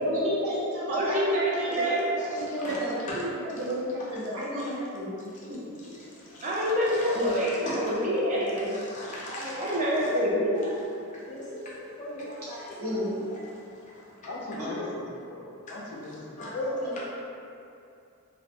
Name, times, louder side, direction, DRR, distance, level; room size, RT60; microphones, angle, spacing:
voice 1, 0.0-1.4 1.7-2.0 2.3-5.2 5.5-5.9 9.9-10.0 12.8-13.1 14.6-14.7 16.7-16.9, equal, 70° right, -8 dB, 0.7 m, -32 dB
voice 2, 0.9-2.5 6.4-8.9 9.6-10.8, equal, 35° right, -5 dB, 0.4 m, -27 dB
voice 3, 8.9-9.7 11.3-11.7 12.0-13.0 16.4-17.0, left 1 dB, 35° left, -7 dB, 0.5 m, -36 dB
voice 4, 14.2-16.6, left 1 dB, 85° left, -3 dB, 0.5 m, -39 dB
2.4 x 2.0 x 2.6 m, 2.6 s
head